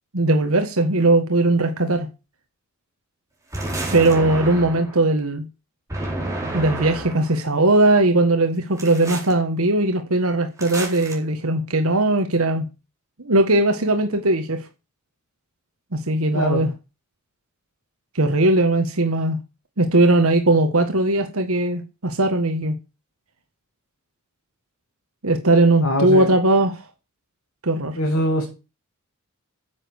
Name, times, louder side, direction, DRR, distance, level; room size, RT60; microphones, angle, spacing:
voice 1, 0.1-2.1 3.9-5.4 6.5-12.7 13.2-14.6 16.1-16.7 18.1-19.4 19.8-22.7 25.2-26.8 27.6-28.0, right 2 dB, 90° right, 1.6 m, -19 dB
sound 1, 3.5-5.0 5.9-7.4 8.8-9.3 10.6-11.1, right 2 dB, 15° right, 4.3 m, -30 dB
voice 2, 25.8-26.3 28.0-28.4, equal, 85° left, 2.6 m, -22 dB
10.0 x 7.6 x 6.5 m
head